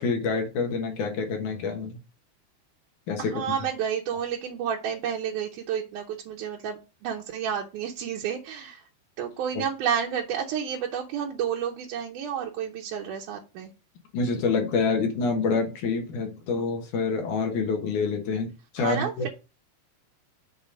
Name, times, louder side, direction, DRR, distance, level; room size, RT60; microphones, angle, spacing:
voice 1, 0.0-2.0 3.1-3.3 9.6-9.7 14.1-19.3, left 4 dB, 65° left, 3 dB, 2.7 m, -27 dB
voice 2, 3.2-8.8 9.2-13.7 18.8-19.3, right 8 dB, 70° right, -1 dB, 2.1 m, -30 dB
7.0 x 4.0 x 5.1 m, 0.30 s
omnidirectional pair, 4.2 m